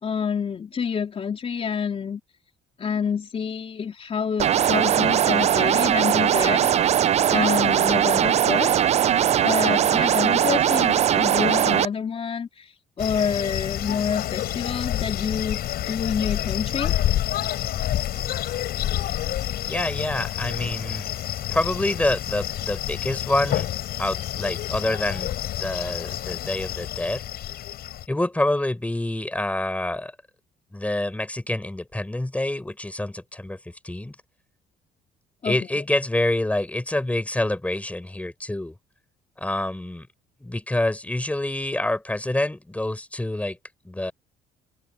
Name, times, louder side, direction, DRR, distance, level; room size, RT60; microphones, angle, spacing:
voice 1, 0.0-2.2 2.8-6.7 7.3-8.8 9.4-15.6 15.9-16.9 35.4-35.6, left 6 dB, 35° left, 3.4 m, -27 dB
sound 1, 4.4-11.9, right 10 dB, 40° right, 0.4 m, -20 dB
sound 2, 13.0-28.1, left 12 dB, 65° left, 5.7 m, -28 dB
voice 2, 19.7-21.1 21.5-23.7 24.0-25.3 25.6-27.2 28.1-30.1 30.7-33.6 33.8-34.1 35.4-38.7 39.4-40.1 40.4-43.6 43.8-44.1, left 1 dB, 10° left, 6.0 m, -27 dB
open air
cardioid pair, 110°, 17 cm